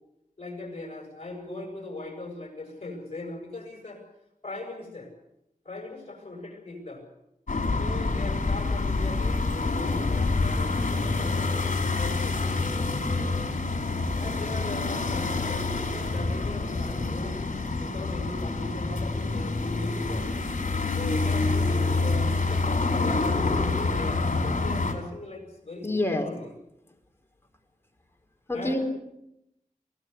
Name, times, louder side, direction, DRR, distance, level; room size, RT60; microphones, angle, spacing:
voice 1, 0.4-4.0 4.4-5.1 5.6-7.0 7.8-12.4 14.2-17.4 17.8-20.3 21.0-26.5 28.5-28.8, left 2 dB, 50° left, 3 dB, 7.8 m, -39 dB
sound 1, 7.5-24.9, left 3 dB, 65° left, 4.7 m, -27 dB
voice 2, 25.8-26.3 28.5-28.8, left 1 dB, 15° left, 3 dB, 4.3 m, -26 dB
23.5 x 17.5 x 8.3 m, 0.83 s
wide cardioid pair, 90°, 14 cm